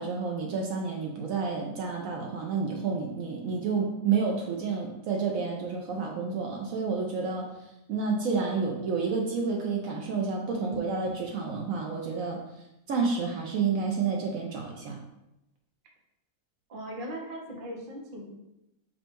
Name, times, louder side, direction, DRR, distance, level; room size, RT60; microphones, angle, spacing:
voice 1, 0.0-7.5 7.9-12.4 12.9-15.0, right 5 dB, 70° right, 1 dB, 1.0 m, -30 dB
voice 2, 10.6-10.9 16.7-18.4, right 2 dB, 45° right, 0 dB, 0.8 m, -38 dB
5.1 x 2.3 x 4.4 m, 0.90 s
omnidirectional pair, 1.6 m